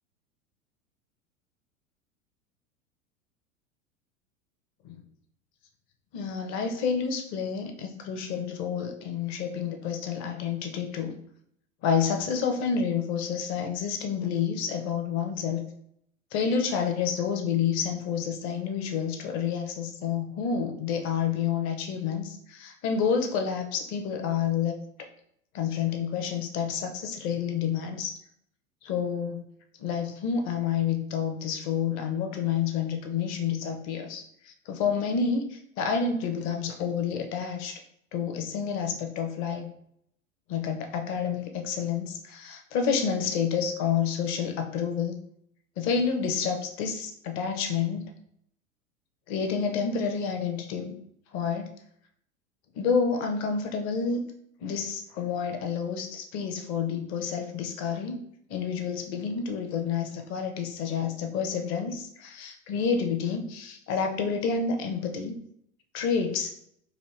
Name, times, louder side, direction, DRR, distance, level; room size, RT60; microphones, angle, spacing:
voice 1, 6.1-11.1 11.8-15.7 16.3-25.1 25.5-28.1 28.8-29.4 29.8-37.8 38.1-39.7 40.5-45.1 45.8-48.1 49.3-50.9 51.3-51.7 52.7-54.3 54.6-58.2 58.5-65.3 65.9-66.5, left 6 dB, 40° left, 5 dB, 0.9 m, -29 dB
4.2 x 2.6 x 3.1 m, 0.71 s
figure-of-eight pair, 90°, 41 cm